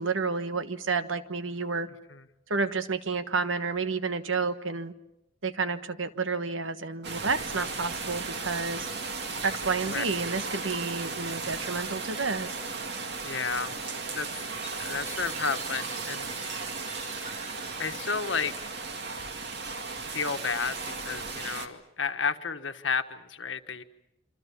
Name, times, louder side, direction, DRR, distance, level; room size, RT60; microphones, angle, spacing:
voice 1, 0.0-1.9 2.5-4.9 5.4-8.9 9.4-12.6, right 4 dB, 90° right, 11 dB, 1.3 m, -30 dB
sound 1, 7.0-21.7, right 4 dB, 60° right, 2.2 m, -36 dB
voice 2, 13.2-13.8 14.1-16.6 17.2-17.5 17.8-18.7 20.0-23.8, left 5 dB, 75° left, 8 dB, 1.4 m, -32 dB
Chime, 14.6-19.3, right 4 dB, 40° right, 2.0 m, -46 dB
26.5 x 26.5 x 7.2 m, 0.85 s
head